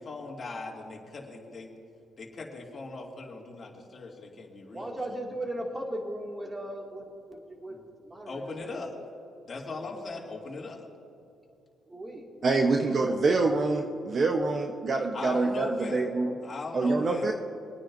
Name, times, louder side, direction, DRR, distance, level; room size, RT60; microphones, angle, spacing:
voice 1, 0.0-1.7 2.2-4.9 7.7-7.8 8.3-8.9 9.4-10.9 15.1-16.1 16.4-17.3, left 3 dB, 40° left, -2 dB, 2.4 m, -39 dB
voice 2, 4.7-8.9 11.9-12.3, right 1 dB, 25° right, 0 dB, 2.3 m, -37 dB
voice 3, 12.4-16.3 16.7-17.3, right 3 dB, 45° right, 3 dB, 0.9 m, -26 dB
25.0 x 9.7 x 2.6 m, 2.7 s
cardioid pair, 90°, 0 cm